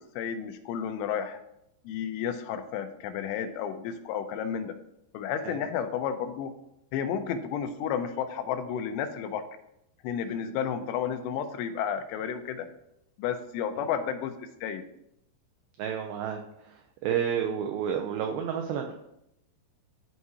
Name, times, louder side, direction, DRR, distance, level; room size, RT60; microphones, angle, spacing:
voice 1, 0.0-1.4 1.8-4.7 5.1-6.5 6.9-9.4 10.0-12.7 13.2-14.9, left 8 dB, 85° left, 8 dB, 2.8 m, -32 dB
voice 2, 15.8-16.4 17.0-19.0, right 8 dB, 90° right, 4 dB, 2.1 m, -30 dB
12.5 x 4.7 x 2.8 m, 0.81 s
omnidirectional pair, 5.0 m